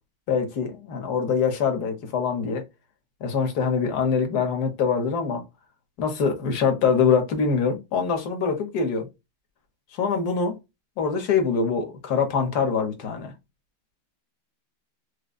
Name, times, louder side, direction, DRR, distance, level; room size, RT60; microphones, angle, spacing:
voice 1, 0.3-2.6 3.2-5.4 6.0-9.1 9.9-10.6 11.0-13.3, left 5 dB, 55° left, 1.4 m, -24 dB
5.0 x 2.3 x 2.2 m
omnidirectional pair, 2.2 m